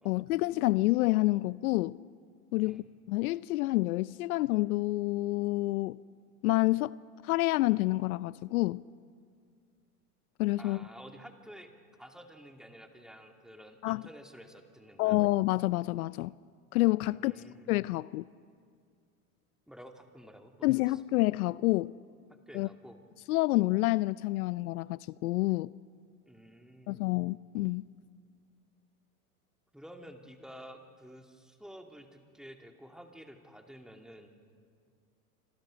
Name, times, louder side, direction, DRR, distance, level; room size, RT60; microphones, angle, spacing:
voice 1, 0.0-2.0 2.5-6.0 6.4-7.0 7.2-8.8 10.4-10.8 13.8-14.0 15.0-16.3 16.7-17.3 17.7-18.2 20.6-21.9 22.5-22.7 23.3-25.7 26.9-27.8, left 19 dB, 70° left, 19 dB, 0.6 m, -28 dB
voice 2, 10.6-11.7 12.0-15.2 17.1-17.7 19.7-21.0 22.5-23.0 26.3-27.1 29.7-34.3, equal, ahead, 3 dB, 2.3 m, -51 dB
26.5 x 26.5 x 5.1 m, 2.2 s
hypercardioid pair, 105°, 45 cm